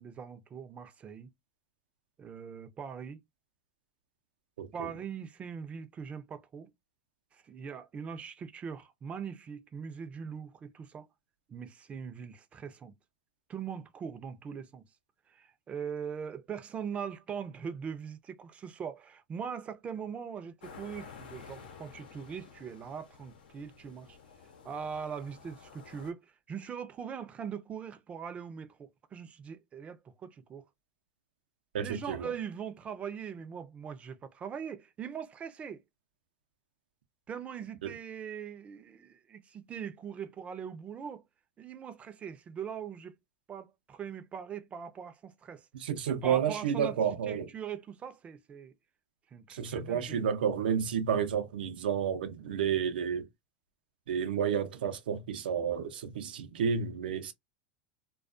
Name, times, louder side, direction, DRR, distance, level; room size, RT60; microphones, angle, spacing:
voice 1, 0.0-1.3 2.2-3.2 4.7-6.7 7.3-11.1 11.5-12.9 13.5-14.8 15.3-24.2 24.6-30.7 31.8-35.8 37.3-41.2 41.6-43.2 43.5-45.7 46.1-47.0 47.2-48.7 49.3-50.3, right 7 dB, 25° right, 0.4 m, -41 dB
voice 2, 4.6-4.9 31.7-32.3 37.8-37.9 45.7-47.5 49.5-53.3 54.1-57.3, right 7 dB, 85° right, 0.5 m, -31 dB
sound 1, 20.6-26.1, left 6 dB, 90° left, 0.8 m, -52 dB
2.3 x 2.2 x 2.4 m
supercardioid pair, 115°, 5 cm